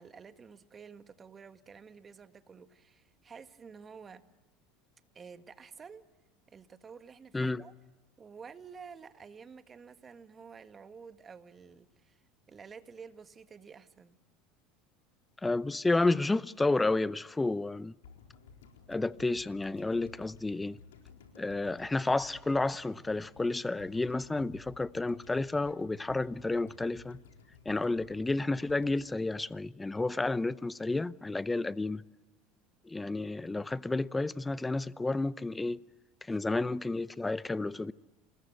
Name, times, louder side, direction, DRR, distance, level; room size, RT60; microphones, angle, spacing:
voice 1, 0.0-4.2 5.1-6.0 6.5-7.7 8.2-12.2 12.5-14.1 27.7-27.9 36.3-36.4, right 6 dB, 30° right, 1.7 m, -50 dB
voice 2, 15.4-17.9 18.9-20.8 21.4-27.2 27.7-32.0 32.9-35.8 36.3-37.9, left 2 dB, 15° left, 0.7 m, -31 dB
sound 1, 18.0-30.2 30.5-30.6, left 5 dB, 85° left, 4.0 m, -56 dB
27.5 x 21.0 x 8.1 m
hypercardioid pair, 85°, 0 cm